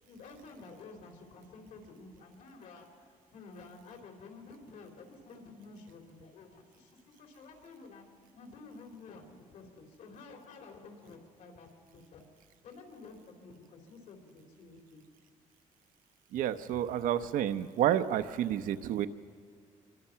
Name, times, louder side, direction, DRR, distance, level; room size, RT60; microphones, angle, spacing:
voice 1, 0.1-8.1 8.3-12.2 12.6-15.0, left 3 dB, 75° left, 2 dB, 4.0 m, -51 dB
voice 2, 16.3-19.1, right 11 dB, 85° right, 10 dB, 0.9 m, -30 dB
25.5 x 23.0 x 5.8 m, 2.3 s
cardioid pair, 170°, 14 cm